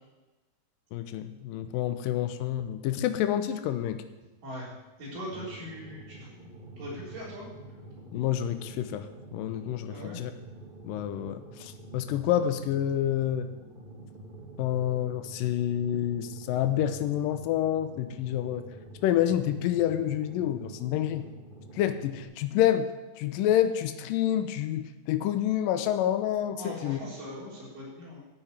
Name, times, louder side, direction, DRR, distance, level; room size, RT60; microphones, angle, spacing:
voice 1, 0.9-4.0 8.1-9.1 9.3-10.3 10.8-13.5 14.6-18.6 19.0-21.3 21.7-22.9 23.2-27.0, left 11 dB, 85° left, 9 dB, 2.4 m, -28 dB
voice 2, 4.4-7.4 9.9-10.2 26.6-28.2, equal, 75° right, -8 dB, 5.7 m, -41 dB
sound 1, 5.3-22.2, right 2 dB, 55° right, 0.5 m, -47 dB
13.5 x 5.9 x 8.8 m, 1.1 s
omnidirectional pair, 3.9 m